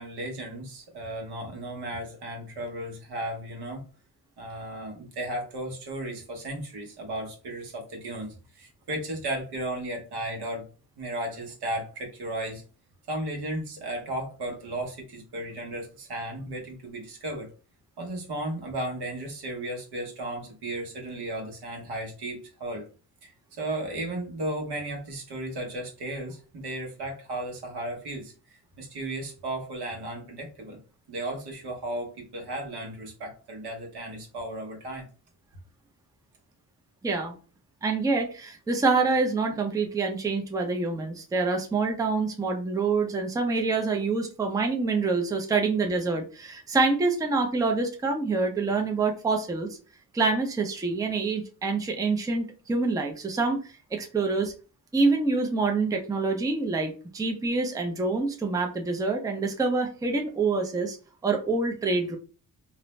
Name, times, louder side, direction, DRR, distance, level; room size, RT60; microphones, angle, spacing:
voice 1, 0.0-3.8 4.4-10.7 11.0-12.6 13.1-17.5 18.0-22.9 23.2-23.3 23.6-30.8 31.1-35.1, right 1 dB, 85° right, 1 dB, 1.1 m, -35 dB
voice 2, 37.0-37.3 37.8-49.7 50.1-53.6 53.9-54.5 54.9-61.0 61.2-62.2, right 3 dB, 10° right, 3 dB, 0.4 m, -26 dB
2.6 x 2.0 x 3.0 m, 0.36 s
wide cardioid pair, 130°, 39 cm